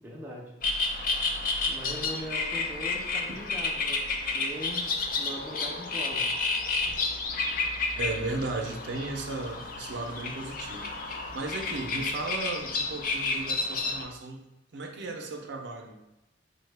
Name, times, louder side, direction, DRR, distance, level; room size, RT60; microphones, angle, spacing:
voice 1, 0.0-0.6 1.7-4.0 4.3-6.3 11.6-11.8, equal, 10° right, -2 dB, 0.5 m, -40 dB
sound 1, 0.6-14.0, left 3 dB, 45° left, 0.4 m, -31 dB
voice 2, 8.0-14.5 14.7-16.0, right 2 dB, 65° right, 2 dB, 0.5 m, -36 dB
5.3 x 2.1 x 3.2 m, 0.92 s
head